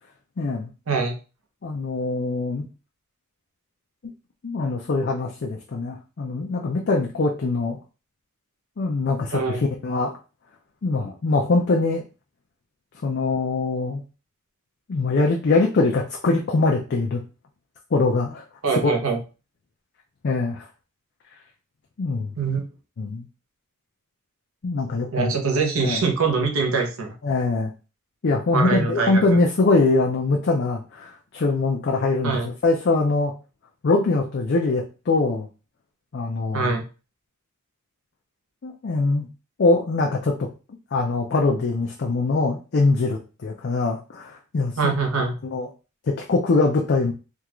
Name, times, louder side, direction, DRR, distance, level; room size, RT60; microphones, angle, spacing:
voice 1, 0.4-0.7 1.6-2.7 4.4-7.8 8.8-10.1 10.8-12.0 13.0-14.0 14.9-17.2 17.9-18.4 18.8-18.9 20.2-20.7 22.0-22.3 23.0-23.3 24.6-25.3 25.8-26.0 27.2-27.7 28.2-33.3 33.8-35.5 36.1-36.8 38.6-39.3 39.6-40.5 40.9-44.9 45.4-45.7 46.1-47.1, left 3 dB, 50° left, 0 dB, 0.4 m, -23 dB
voice 2, 0.9-1.2 9.3-9.6 18.6-19.2 22.4-22.6 25.1-27.1 28.5-29.4 32.2-32.5 36.5-36.8 44.8-45.4, right 4 dB, 65° right, 2 dB, 0.7 m, -23 dB
3.5 x 2.4 x 2.9 m, 0.33 s
head